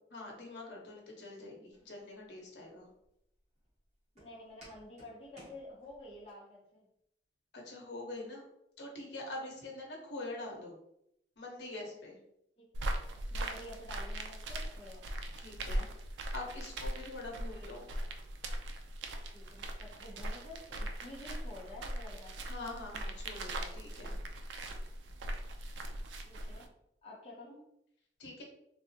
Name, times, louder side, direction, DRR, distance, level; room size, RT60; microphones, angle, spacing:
voice 1, 0.1-2.9 7.5-8.4 8.8-10.7 11.4-12.2 15.4-15.9 16.3-17.9 22.4-24.1 28.2-28.4, left 2 dB, 80° left, -1 dB, 0.8 m, -44 dB
Walk footsteps, 1.7-6.3, equal, 35° right, 1.2 m, -61 dB
voice 2, 4.1-6.9 12.6-12.7 13.3-15.1 19.3-22.4 26.3-26.7 27.0-27.6, left 1 dB, 30° left, -5 dB, 0.6 m, -50 dB
sound 1, 12.7-26.7, right 1 dB, 90° right, 0.4 m, -40 dB
3.4 x 2.0 x 2.7 m, 0.78 s
head